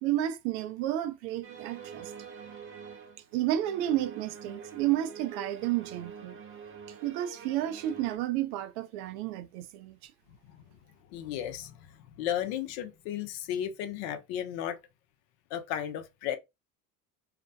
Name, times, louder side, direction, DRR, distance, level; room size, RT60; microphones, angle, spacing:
voice 1, 0.0-2.1 3.3-6.4 7.0-10.1, right 13 dB, 65° right, 0.5 m, -31 dB
sound 1, 1.4-8.2, right 6 dB, 30° right, 0.7 m, -46 dB
voice 2, 11.1-11.9 12.2-14.8 15.5-16.4, left 10 dB, 65° left, 0.7 m, -34 dB
2.5 x 2.1 x 2.5 m
hypercardioid pair, 70°, 46 cm